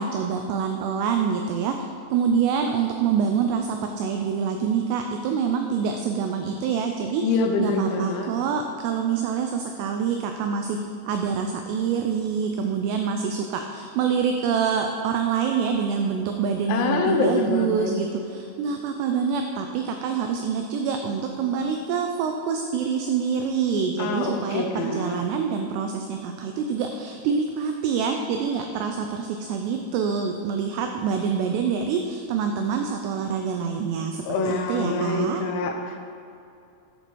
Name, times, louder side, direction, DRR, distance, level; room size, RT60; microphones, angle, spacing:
voice 1, 0.0-10.8 11.1-35.4, right 6 dB, 85° right, 4 dB, 2.4 m, -26 dB
voice 2, 7.2-8.3 16.7-17.9 24.0-25.2 34.3-36.0, left 3 dB, 85° left, 4 dB, 3.0 m, -25 dB
8.6 x 6.6 x 4.5 m, 2.7 s
omnidirectional pair, 5.4 m